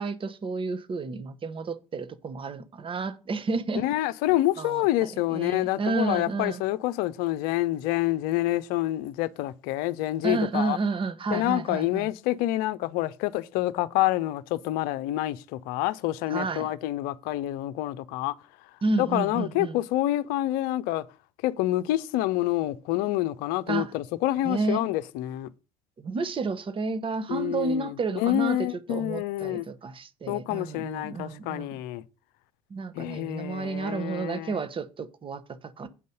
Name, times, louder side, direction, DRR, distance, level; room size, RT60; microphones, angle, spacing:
voice 1, 0.0-3.8 4.6-6.6 10.2-12.1 16.3-16.7 18.8-19.8 23.7-23.9 24.4-24.9 26.0-31.8 32.7-35.9, right 4 dB, 30° right, 1.1 m, -31 dB
voice 2, 3.8-10.8 11.3-18.3 19.0-21.0 21.4-25.5 27.3-29.6 30.3-32.0 32.9-34.5, left 15 dB, 60° left, 0.7 m, -27 dB
8.5 x 5.4 x 6.5 m
figure-of-eight pair, 60°, 18 cm